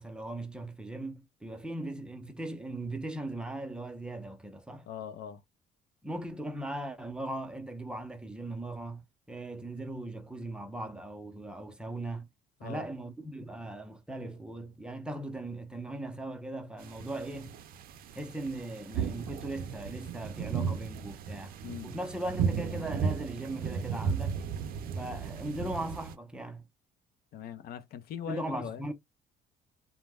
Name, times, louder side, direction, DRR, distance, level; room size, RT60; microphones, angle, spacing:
voice 1, 0.0-4.9 6.0-12.3 12.6-17.6 18.1-21.5 21.8-24.4 25.0-26.7 28.3-28.9, right 1 dB, 5° right, 0.5 m, -39 dB
voice 2, 4.9-5.4 12.6-12.9 21.6-22.0 27.3-28.8, left 9 dB, 65° left, 0.6 m, -41 dB
sound 1, 16.8-26.1, right 6 dB, 60° right, 0.5 m, -35 dB
2.1 x 2.1 x 3.3 m
cardioid pair, 110°, 17 cm